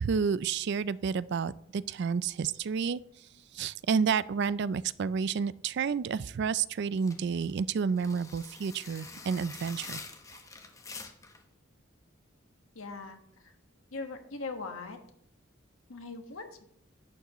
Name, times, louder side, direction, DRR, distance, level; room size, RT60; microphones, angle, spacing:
voice 1, 0.0-3.0 3.5-10.0, right 6 dB, 55° right, 18 dB, 0.3 m, -30 dB
sound 1, 6.9-11.4, left 4 dB, 15° left, 0.9 m, -46 dB
voice 2, 12.7-13.2 13.9-15.0 15.9-16.7, left 3 dB, 80° left, 5 dB, 1.4 m, -40 dB
11.5 x 9.1 x 3.0 m, 0.70 s
head